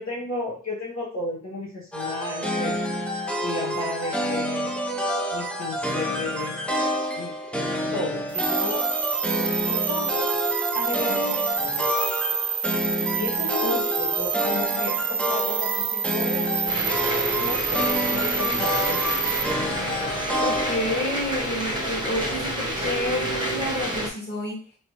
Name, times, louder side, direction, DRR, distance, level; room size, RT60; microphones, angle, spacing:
voice 1, 0.0-2.8 3.4-4.8 5.3-6.6 7.2-7.5 7.9-8.9 9.6-10.3 10.7-12.0 13.2-16.6 17.4-19.3, left 2 dB, 55° left, -6 dB, 1.0 m, -33 dB
sound 1, 1.9-21.2, equal, 5° left, 0.5 m, -28 dB
sound 2, 8.3-19.4, right 8 dB, 65° right, 0.4 m, -27 dB
sound 3, 16.7-24.1, right 1 dB, 15° right, 0.9 m, -29 dB
voice 2, 20.4-24.6, left 1 dB, 35° left, -5 dB, 1.6 m, -29 dB
3.1 x 2.9 x 2.9 m, 0.41 s
wide cardioid pair, 75°, 32 cm